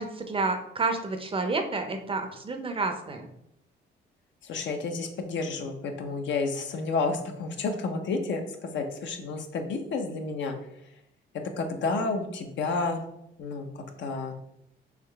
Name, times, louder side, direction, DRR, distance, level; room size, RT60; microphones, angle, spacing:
voice 1, 0.0-3.3, right 3 dB, 30° right, 6 dB, 0.5 m, -30 dB
voice 2, 4.4-10.6 11.6-13.0 13.4-13.7 14.0-14.3, left 3 dB, 70° left, 5 dB, 0.7 m, -30 dB
3.7 x 3.1 x 3.3 m, 0.81 s
cardioid pair, 90°, 20 cm